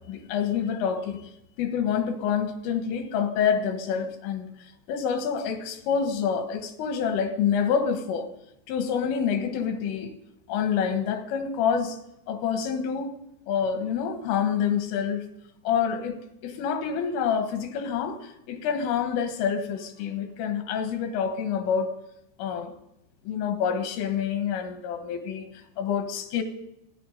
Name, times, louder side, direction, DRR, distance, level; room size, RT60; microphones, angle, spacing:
voice 1, 0.1-1.2 1.6-4.5 4.9-8.3 8.7-10.2 10.5-12.0 12.3-13.1 13.5-15.2 15.7-21.9 22.4-22.7 23.2-26.4, left 7 dB, 80° left, 3.9 m, -27 dB
26.0 x 10.0 x 5.4 m
omnidirectional pair, 5.7 m